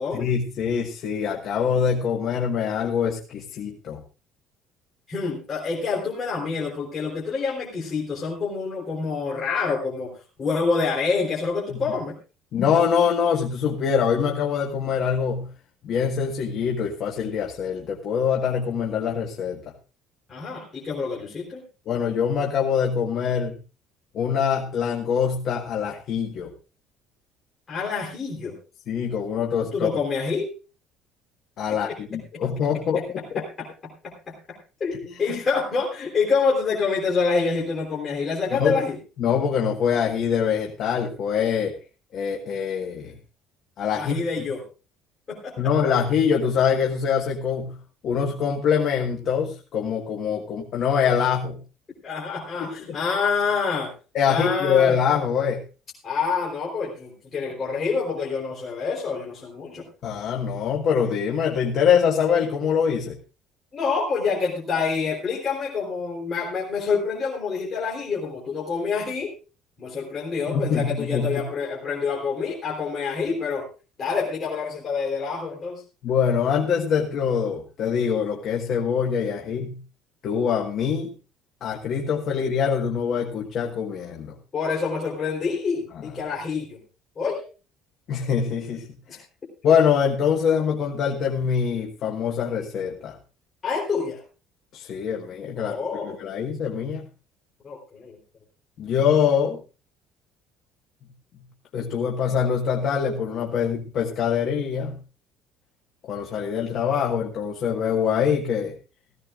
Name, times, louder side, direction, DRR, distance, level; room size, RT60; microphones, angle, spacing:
voice 1, 0.1-4.0 11.7-11.8 12.5-15.5 15.8-19.6 21.9-23.6 24.1-26.5 28.9-29.9 31.6-33.4 35.3-35.4 38.6-38.8 39.2-41.7 42.1-43.1 43.8-44.2 45.6-47.8 48.0-51.6 52.6-52.7 54.1-55.6 60.0-63.2 70.5-71.4 76.0-79.8 80.2-81.1 81.6-84.3 88.1-89.2 89.6-93.2 94.7-95.8 96.0-97.0 98.8-99.6 101.7-105.0 106.1-108.7, left 7 dB, 45° left, 1 dB, 1.4 m, -24 dB
voice 2, 5.1-10.1 10.4-12.1 20.3-21.6 27.7-28.6 29.7-30.5 31.7-32.4 33.4-33.7 34.0-39.0 44.0-44.6 45.3-45.7 52.0-53.9 54.3-55.0 56.0-59.8 63.7-69.3 69.8-73.7 74.0-75.8 84.5-86.8 87.2-87.4 89.1-89.2 93.6-94.2 95.6-96.1 97.6-98.2, left 5 dB, 25° left, -4 dB, 3.6 m, -27 dB
16.5 x 15.5 x 2.4 m, 0.33 s
cardioid pair, 165°, 0 cm